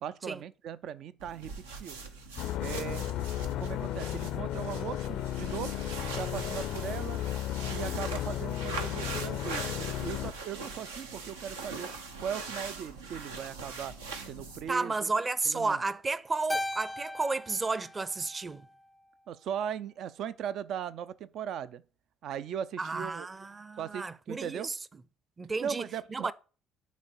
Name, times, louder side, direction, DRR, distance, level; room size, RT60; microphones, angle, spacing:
voice 1, 0.0-2.0 2.6-3.0 3.6-5.7 6.1-7.2 7.7-11.9 12.2-13.9 14.2-14.9 15.5-15.8 19.3-21.8 22.2-23.3 23.8-24.7 25.6-26.3, right 9 dB, 60° right, 0.5 m, -38 dB
sound 1, 1.2-14.8, right 4 dB, 85° right, 1.0 m, -42 dB
sound 2, 2.4-10.3, left 12 dB, 65° left, 0.5 m, -34 dB
voice 2, 14.7-18.7 22.8-24.8 25.4-26.3, right 3 dB, 25° right, 0.7 m, -32 dB
Keyboard (musical), 16.5-19.0, left 1 dB, 10° left, 0.4 m, -38 dB
9.4 x 4.2 x 7.0 m
hypercardioid pair, 55°, 0 cm